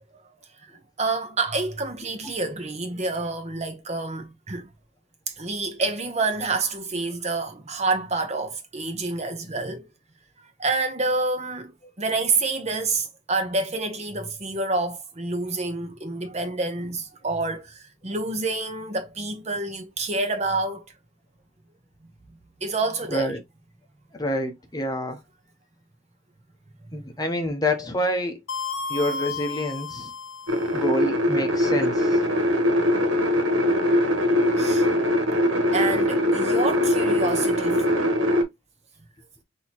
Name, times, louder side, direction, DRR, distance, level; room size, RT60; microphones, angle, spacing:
voice 1, 0.6-4.7 5.3-9.9 10.4-11.7 12.0-20.8 22.6-23.3 27.0-27.1 34.6-34.9 35.7-38.0, right 3 dB, 35° right, 0.9 m, -28 dB
voice 2, 24.1-25.2 26.9-28.4 28.9-30.1 30.7-32.2, left 1 dB, 20° left, 0.8 m, -27 dB
sound 1, 28.5-30.9, left 4 dB, 80° left, 0.9 m, -33 dB
sound 2, 30.5-38.4, left 1 dB, 80° right, 1.3 m, -22 dB
6.3 x 2.8 x 2.9 m
head